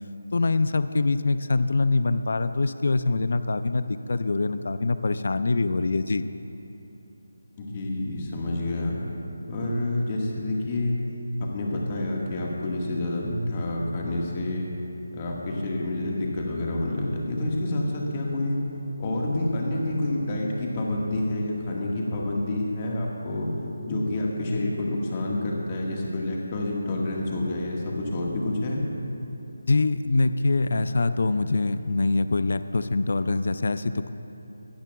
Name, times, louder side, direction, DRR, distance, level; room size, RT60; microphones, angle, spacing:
voice 1, 0.3-6.2 29.7-34.1, left 3 dB, 60° left, 12 dB, 0.4 m, -24 dB
voice 2, 7.6-9.0 9.5-11.0 11.5-14.7 15.1-18.6 19.0-23.5 23.9-28.8, left 1 dB, 25° left, -2 dB, 1.5 m, -28 dB
18.0 x 12.0 x 2.3 m, 2.9 s
figure-of-eight pair, 170°, 0 cm